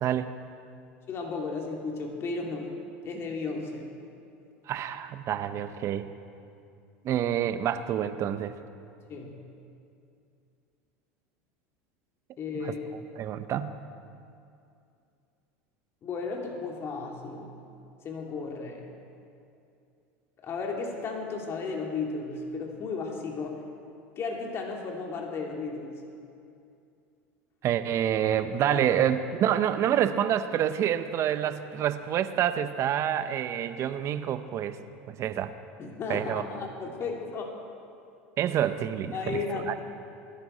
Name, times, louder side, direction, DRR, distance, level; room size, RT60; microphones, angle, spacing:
voice 1, 0.0-0.3 4.7-6.1 7.0-8.5 12.5-12.8 13.2-13.8 27.6-34.8 35.1-35.5 36.1-36.4 38.4-39.4 39.7-39.8, right 10 dB, 45° right, 11 dB, 0.9 m, -27 dB
voice 2, 1.1-2.7 3.0-3.8 9.1-9.4 12.4-12.9 16.0-17.5 18.0-18.9 20.4-23.6 24.2-26.0 28.7-28.8 35.8-37.6 39.1-39.8, left 4 dB, 40° left, 0 dB, 2.4 m, -34 dB
22.0 x 11.5 x 4.4 m, 2.5 s
hypercardioid pair, 95°, 7 cm